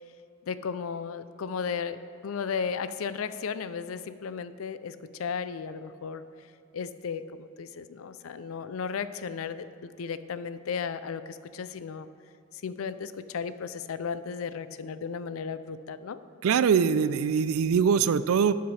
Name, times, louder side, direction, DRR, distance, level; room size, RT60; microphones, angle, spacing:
voice 1, 0.5-6.2 6.7-12.1 12.6-16.2, left 6 dB, 85° left, 13 dB, 0.4 m, -35 dB
voice 2, 16.4-18.5, right 6 dB, 90° right, 15 dB, 0.4 m, -23 dB
12.0 x 7.9 x 3.3 m, 2.6 s
head